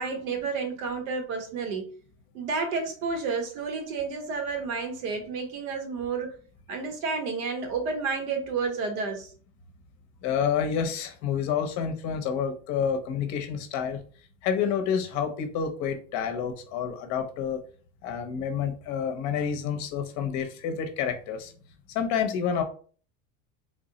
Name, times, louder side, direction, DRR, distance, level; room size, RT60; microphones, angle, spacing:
voice 1, 0.0-1.9 2.3-6.3 6.7-9.3, right 4 dB, 85° right, 5 dB, 1.1 m, -31 dB
voice 2, 10.2-14.0 14.4-17.6 18.0-21.5 21.9-22.6, left 7 dB, 45° left, 5 dB, 0.6 m, -29 dB
3.4 x 2.0 x 3.8 m, 0.43 s
supercardioid pair, 150°, 40 cm